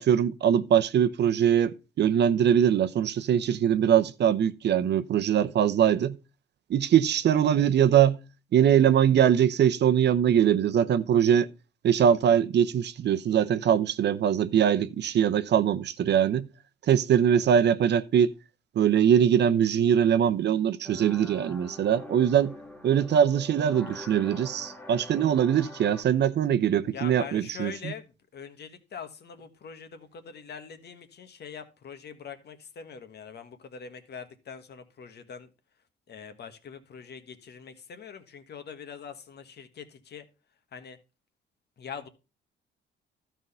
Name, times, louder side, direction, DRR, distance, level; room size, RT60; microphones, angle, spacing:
voice 1, 0.0-6.2 6.7-8.2 8.5-11.5 11.8-16.5 16.9-18.3 18.8-22.5 22.8-27.9, right 9 dB, 60° right, 0.7 m, -22 dB
sound 1, 20.8-26.0, left 1 dB, 5° left, 1.6 m, -44 dB
voice 2, 26.9-35.5 36.1-40.2 40.7-41.0 41.8-42.1, left 7 dB, 55° left, 1.5 m, -43 dB
12.5 x 4.7 x 5.5 m
cardioid pair, 90°, 20 cm